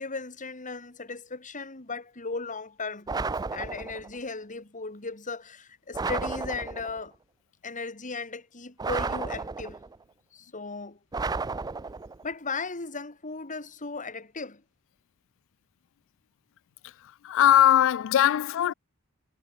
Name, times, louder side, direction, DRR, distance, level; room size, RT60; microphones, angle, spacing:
voice 1, 0.0-3.1 3.5-7.1 7.6-9.8 10.3-11.0 12.2-14.6, left 4 dB, 35° left, 2.6 m, -36 dB
sound 1, 3.1-4.1 5.9-7.0 8.8-10.0 11.1-12.2, right 4 dB, 20° right, 0.4 m, -32 dB
voice 2, 17.2-18.7, left 11 dB, 65° left, 0.3 m, -20 dB
head